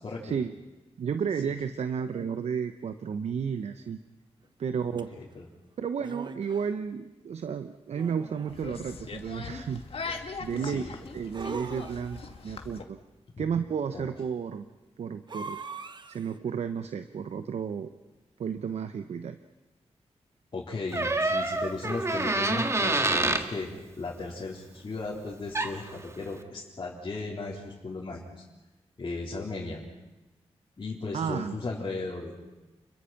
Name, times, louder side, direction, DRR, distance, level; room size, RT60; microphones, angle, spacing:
voice 1, 0.2-0.5 1.0-4.0 4.6-5.1 5.8-9.8 10.4-10.8 11.1-13.0 13.4-14.7 15.0-15.6 16.1-17.9 18.4-19.4 31.1-31.6, right 7 dB, 75° right, 10 dB, 1.0 m, -32 dB
sound 1, 5.0-5.1 6.0-6.7 7.9-8.7 11.3-12.4 15.3-16.4, right 4 dB, 45° right, 1.2 m, -41 dB
sound 2, 8.5-12.8, left 4 dB, 60° left, 2.2 m, -40 dB
voice 2, 10.5-10.9 13.4-13.5 13.9-14.1 20.5-23.7 24.0-28.4 29.0-29.8 30.8-32.3, left 3 dB, 40° left, -6 dB, 4.1 m, -36 dB
Door, 20.9-23.5 25.3-25.4 25.5-25.9, right 2 dB, 25° right, 1.8 m, -27 dB
29.5 x 22.0 x 6.0 m, 1.1 s
wide cardioid pair, 100°, 11 cm